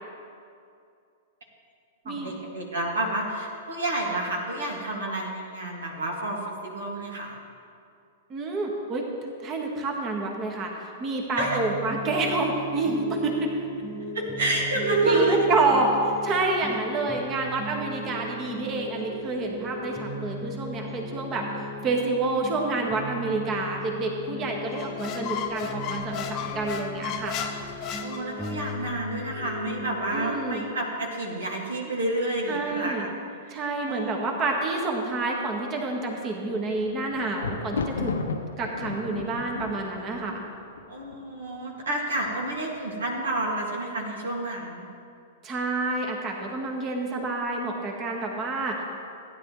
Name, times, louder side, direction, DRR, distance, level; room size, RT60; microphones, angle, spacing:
voice 1, 2.1-7.3 11.3-11.6 14.1-15.5 28.0-33.1 33.5-33.6 33.9-34.3 40.9-44.8, right 2 dB, 70° right, -1 dB, 2.1 m, -29 dB
voice 2, 8.3-9.0 9.4-13.5 14.8-21.4 21.8-27.4 30.1-30.7 32.5-33.1 33.5-38.1 38.6-40.5 45.4-48.8, right 3 dB, 30° right, 1 dB, 1.7 m, -28 dB
sound 1, 11.4-30.7, left 1 dB, 5° left, 2.0 m, -37 dB
Squeak, 24.7-28.8, left 8 dB, 35° left, 0.9 m, -34 dB
Thunder, 36.4-41.5 42.3-42.8 43.0-43.1, left 4 dB, 75° left, 0.7 m, -34 dB
15.0 x 10.0 x 3.2 m, 2.5 s
figure-of-eight pair, 105°, 0 cm